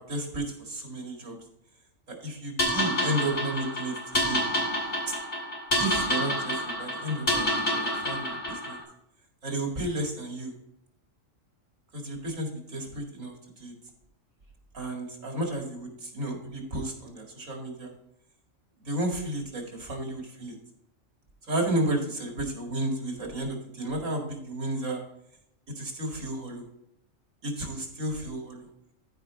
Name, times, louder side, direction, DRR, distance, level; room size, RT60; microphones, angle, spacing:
voice 1, 0.0-1.4 2.1-4.4 5.8-8.8 9.4-10.5 11.9-13.7 14.7-17.9 18.8-20.6 21.5-25.0 25.8-26.7 27.4-28.7, right 1 dB, 85° right, 1 dB, 2.6 m, -32 dB
sound 1, 2.6-8.8, left 1 dB, 45° left, 2.7 m, -28 dB
14.0 x 4.9 x 3.7 m, 0.79 s
omnidirectional pair, 1.3 m